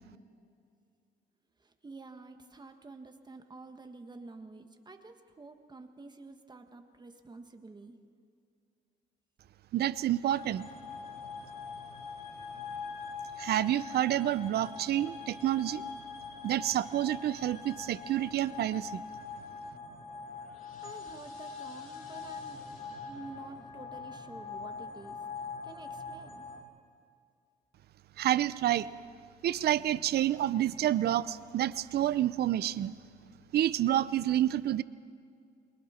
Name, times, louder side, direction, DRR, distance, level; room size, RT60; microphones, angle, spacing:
voice 1, 1.6-8.0 20.8-22.6 23.0-26.5, right 3 dB, 25° right, 5 dB, 1.5 m, -49 dB
voice 2, 9.7-10.7 13.4-15.8 16.4-19.0 28.2-28.9 29.4-32.9 33.5-34.8, right 12 dB, 65° right, 16 dB, 0.7 m, -29 dB
sound 1, 10.3-26.6, left 5 dB, 50° left, 3.6 m, -43 dB
29.0 x 21.5 x 4.4 m, 2.4 s
cardioid pair, 90°, 18 cm